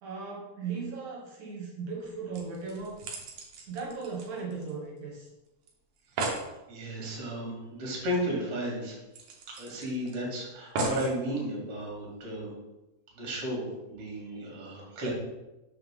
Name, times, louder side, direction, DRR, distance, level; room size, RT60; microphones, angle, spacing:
voice 1, 0.0-3.0 3.7-5.3, right 4 dB, 60° right, -2 dB, 2.3 m, -37 dB
sound 1, 2.0-2.1 2.3-5.0 5.3-5.4 5.7-5.8 6.0-6.5 8.0-8.1 8.4-8.5 9.1-10.1 10.7-11.2 11.9-12.0, right 2 dB, 85° right, 1.5 m, -35 dB
voice 2, 6.7-8.9 9.6-12.5 13.2-15.1, equal, 45° right, -3 dB, 2.2 m, -34 dB
6.6 x 5.7 x 3.7 m, 1.0 s
omnidirectional pair, 4.9 m